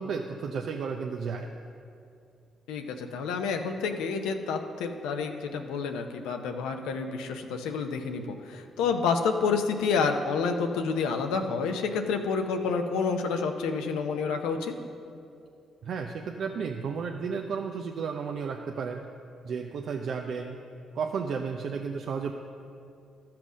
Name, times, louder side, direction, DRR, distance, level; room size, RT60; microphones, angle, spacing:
voice 1, 0.0-1.5 15.8-19.0 19.4-20.6 20.9-22.3, right 5 dB, 70° right, 2 dB, 0.6 m, -33 dB
voice 2, 2.7-14.8, left 5 dB, 90° left, 5 dB, 0.8 m, -29 dB
13.0 x 5.9 x 6.2 m, 2.5 s
supercardioid pair, 60°, 0 cm